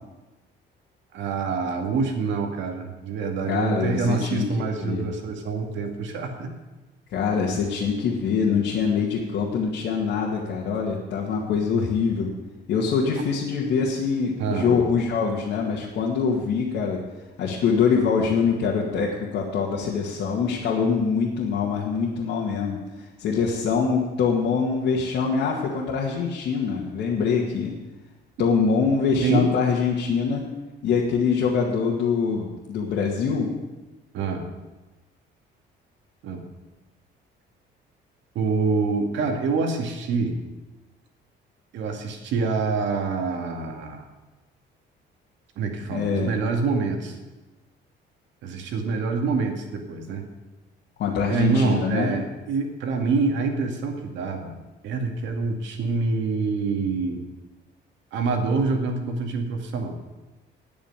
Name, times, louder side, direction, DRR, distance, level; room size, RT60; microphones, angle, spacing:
voice 1, 1.1-6.5 14.4-14.8 29.2-29.5 34.1-34.5 36.2-36.4 38.3-40.4 41.7-44.0 45.6-47.2 48.4-50.2 51.3-54.5 54.8-57.2 58.1-60.0, right 4 dB, 75° right, 3 dB, 2.2 m, -26 dB
voice 2, 3.5-5.0 7.1-12.3 12.7-17.0 17.4-22.8 23.2-27.8 28.4-30.5 30.8-33.5 45.9-46.3 51.0-52.1, left 5 dB, 65° left, -4 dB, 2.0 m, -24 dB
9.5 x 8.9 x 9.2 m, 1.1 s
cardioid pair, 160°, 19 cm